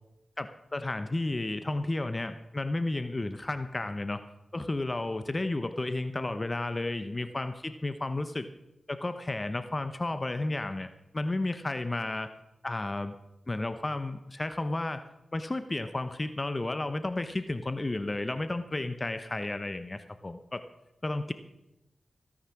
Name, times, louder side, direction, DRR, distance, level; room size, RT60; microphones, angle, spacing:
voice 1, 0.4-4.2 4.5-8.5 8.9-10.9 11.1-12.3 12.6-13.1 13.5-15.0 15.3-20.6 21.0-21.3, left 2 dB, 35° left, 10 dB, 0.9 m, -32 dB
16.0 x 9.8 x 5.9 m, 0.92 s
cardioid pair, 50°, 0 cm